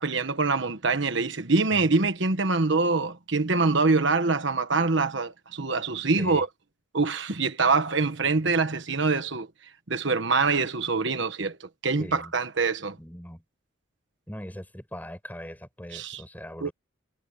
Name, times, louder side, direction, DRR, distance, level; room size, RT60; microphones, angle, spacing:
voice 1, 0.0-6.5 6.9-9.5 9.9-13.0 15.9-16.2 16.6-16.7, right 3 dB, 65° right, 1.3 m, -25 dB
voice 2, 6.2-6.5 12.0-12.3 13.0-13.4 14.3-16.7, equal, 10° left, 6.2 m, -41 dB
head